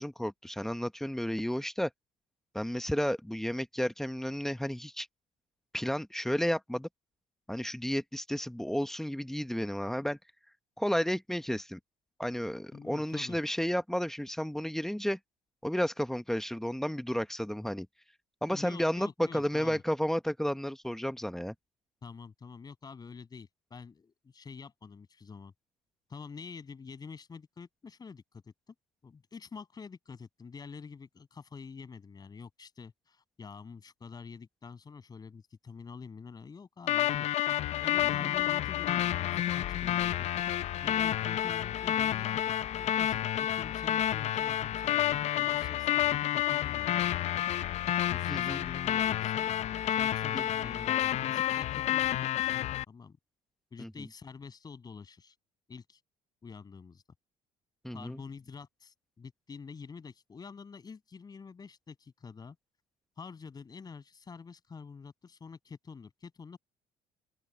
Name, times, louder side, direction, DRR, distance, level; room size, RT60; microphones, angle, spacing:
voice 1, 0.0-1.9 2.5-5.1 5.7-6.9 7.5-10.2 10.8-11.8 12.2-15.2 15.6-17.9 18.4-21.5 48.3-48.6 50.3-50.5 53.8-54.1 57.8-58.2, equal, 5° left, 1.0 m, -32 dB
voice 2, 12.7-13.4 18.5-19.8 22.0-25.5 26.1-28.7 29.0-37.3 37.8-40.3 40.8-42.4 43.0-47.5 48.1-49.5 49.9-53.2 53.7-55.3 55.7-56.0 56.4-57.0 57.9-62.6 63.2-66.6, left 5 dB, 30° left, 7.8 m, -47 dB
sound 1, 36.9-52.8, left 12 dB, 55° left, 0.6 m, -30 dB
open air
cardioid pair, 110°, 14 cm